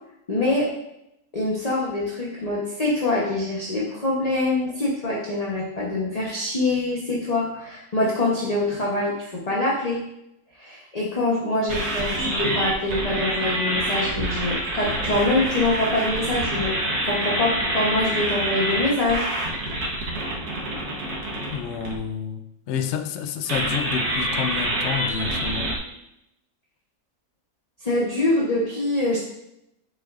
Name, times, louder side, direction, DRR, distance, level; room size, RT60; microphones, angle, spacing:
voice 1, 0.3-0.7 1.3-10.0 10.5-16.8 17.0-19.3 27.8-29.3, left 2 dB, 30° left, 1.0 m, -24 dB
sound 1, 11.7-21.9 23.5-25.8, right 1 dB, 85° right, 1.7 m, -26 dB
voice 2, 21.5-25.8, left 7 dB, 60° left, 0.8 m, -29 dB
7.5 x 6.7 x 2.5 m
omnidirectional pair, 1.6 m